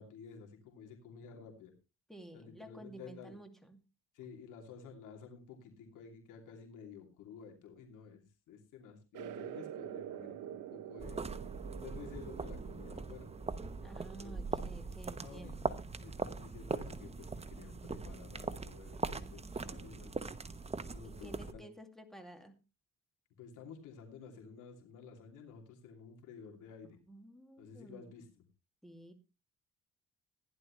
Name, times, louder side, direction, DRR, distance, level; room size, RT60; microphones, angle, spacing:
voice 1, 0.0-1.7 2.3-3.4 4.1-11.2 11.8-13.3 14.2-14.7 15.2-20.2 20.9-21.6 23.4-27.0 27.6-28.4, left 6 dB, 90° left, 2 dB, 3.0 m, -52 dB
voice 2, 2.1-3.8 13.8-15.7 21.0-22.6 26.8-28.1 28.8-29.1, right 1 dB, ahead, 6 dB, 2.4 m, -52 dB
sound 1, 9.1-15.3, right 11 dB, 80° right, 0.9 m, -48 dB
sound 2, 11.0-21.5, right 4 dB, 20° right, 1.0 m, -41 dB
15.5 x 11.0 x 3.2 m, 0.28 s
cardioid pair, 90°, 30 cm